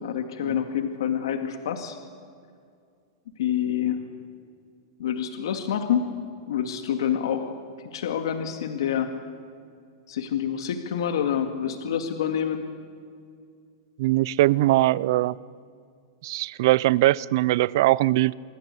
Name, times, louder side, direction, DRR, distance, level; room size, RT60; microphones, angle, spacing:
voice 1, 0.0-2.0 3.4-4.0 5.0-6.1 6.5-7.5 7.9-9.1 10.1-12.7, left 9 dB, 75° left, 7 dB, 2.0 m, -27 dB
voice 2, 14.0-15.3 16.2-18.3, right 17 dB, 50° right, 22 dB, 0.5 m, -21 dB
25.5 x 22.5 x 8.3 m, 2.3 s
supercardioid pair, 165°, 2 cm